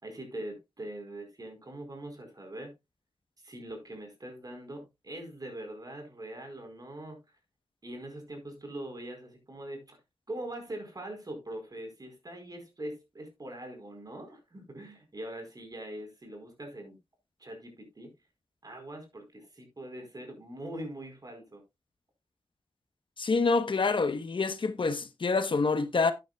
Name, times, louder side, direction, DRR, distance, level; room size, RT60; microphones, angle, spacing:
voice 1, 0.0-2.7 3.4-7.2 7.8-10.0 10.3-17.0 17.4-18.1 18.6-21.6, right 1 dB, 45° right, 4.7 m, -42 dB
voice 2, 23.2-26.1, left 4 dB, 65° left, 1.1 m, -27 dB
12.0 x 9.4 x 2.4 m
wide cardioid pair, 70°, 9 cm